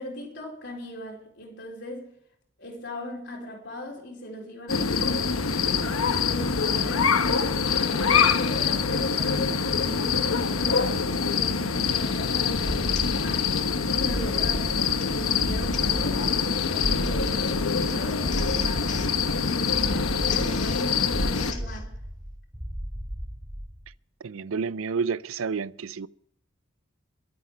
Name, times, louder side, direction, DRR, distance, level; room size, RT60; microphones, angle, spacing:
voice 1, 0.0-2.1 2.6-7.1 7.8-13.5 13.9-19.0 19.4-21.9, left 1 dB, 55° left, 4.4 m, -39 dB
sound 1, 4.7-21.5, left 5 dB, 90° left, 1.0 m, -25 dB
Printer, 11.0-11.3 11.8-12.1 12.3-12.5 13.0-13.2 13.6-13.8 14.6-21.9, left 6 dB, 35° left, 2.0 m, -43 dB
sound 2, 12.5-23.9, equal, 15° right, 2.0 m, -34 dB
voice 2, 24.2-26.1, right 5 dB, 80° right, 0.5 m, -30 dB
23.0 x 8.6 x 5.1 m
head